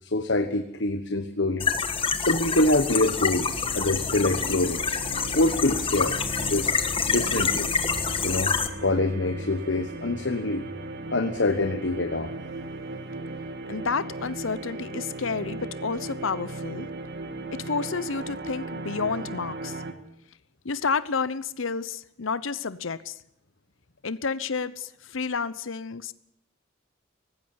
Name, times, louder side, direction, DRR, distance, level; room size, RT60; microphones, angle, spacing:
voice 1, 0.0-1.7 2.2-4.8 5.3-6.2 6.5-6.7 7.1-7.7 8.2-8.5 8.8-10.6 11.1-12.3, left 2 dB, 65° left, 8 dB, 1.3 m, -25 dB
sound 1, 1.6-8.7, left 6 dB, 25° left, 1.4 m, -27 dB
sound 2, 2.0-19.9, right 2 dB, 55° right, 1.9 m, -37 dB
voice 2, 13.7-16.9 17.5-19.8 20.6-23.1 24.0-26.1, left 5 dB, 85° left, 16 dB, 0.9 m, -30 dB
18.5 x 16.0 x 9.6 m, 0.74 s
head